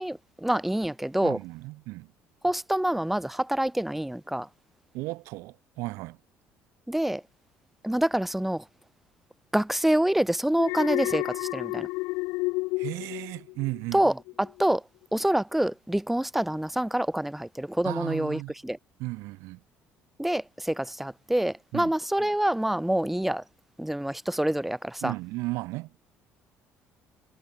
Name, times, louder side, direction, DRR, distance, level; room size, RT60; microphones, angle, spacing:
voice 1, 0.0-1.4 2.4-4.5 6.9-7.2 7.8-8.6 9.5-11.9 13.9-14.8 15.1-18.8 20.2-23.4 23.8-25.1, right 1 dB, 5° right, 2.1 m, -26 dB
voice 2, 1.2-2.1 4.9-6.2 12.8-14.1 17.8-18.5 19.0-19.6 21.7-21.9 25.0-26.0, right 22 dB, 85° right, 4.3 m, -35 dB
Alarm, 10.6-13.9 14.3-14.6, left 24 dB, 90° left, 3.9 m, -31 dB
cardioid pair, 115°, 5 cm